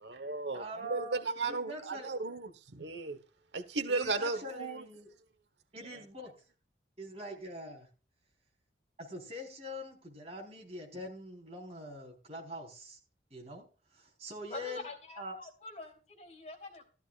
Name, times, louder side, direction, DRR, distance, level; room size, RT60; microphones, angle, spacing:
voice 1, 0.0-3.2 3.5-4.8, right 3 dB, 80° right, 1.2 m, -35 dB
voice 2, 0.5-2.1 3.9-5.1 5.7-6.3 7.0-7.9 9.0-13.0 13.3-13.7 13.9-14.9 15.2-15.4, equal, 35° right, 4.2 m, -44 dB
voice 3, 14.5-16.9, left 2 dB, 40° left, 3.4 m, -45 dB
14.0 x 13.5 x 2.4 m
head